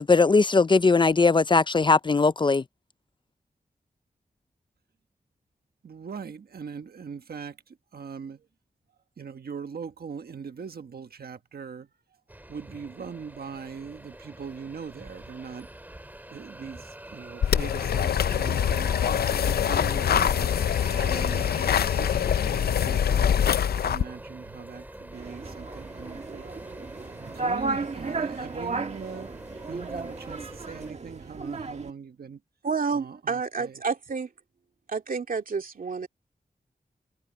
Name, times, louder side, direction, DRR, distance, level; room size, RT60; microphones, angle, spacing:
voice 1, 0.0-2.6, left 4 dB, 30° left, 0.4 m, -20 dB
voice 2, 5.8-8.5 9.2-11.9 12.5-15.7 16.3-20.5 20.9-23.4 23.8-26.6 27.0-29.3 29.7-32.4 32.9-33.8, right 6 dB, 80° right, 1.4 m, -41 dB
sound 1, 12.3-30.9, right 1 dB, 10° right, 2.3 m, -44 dB
sound 2, 17.4-24.0, left 8 dB, 85° left, 0.4 m, -24 dB
sound 3, 25.1-31.9, right 3 dB, 45° right, 1.5 m, -34 dB
voice 3, 32.6-34.3 34.9-36.1, right 5 dB, 65° right, 2.4 m, -29 dB
wide cardioid pair, 105°, 16 cm